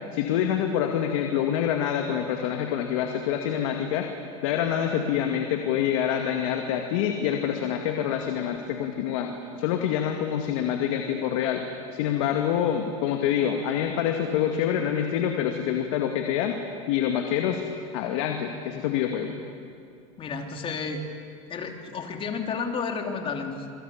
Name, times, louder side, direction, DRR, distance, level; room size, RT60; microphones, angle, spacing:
voice 1, 0.1-4.1 4.4-9.3 9.6-11.7 11.9-16.6 16.9-17.6 17.9-19.4, left 9 dB, 75° left, 4 dB, 2.3 m, -26 dB
voice 2, 20.2-21.0 21.5-23.7, left 5 dB, 30° left, 4 dB, 3.3 m, -31 dB
28.0 x 22.5 x 8.7 m, 2.4 s
supercardioid pair, 125°, 17 cm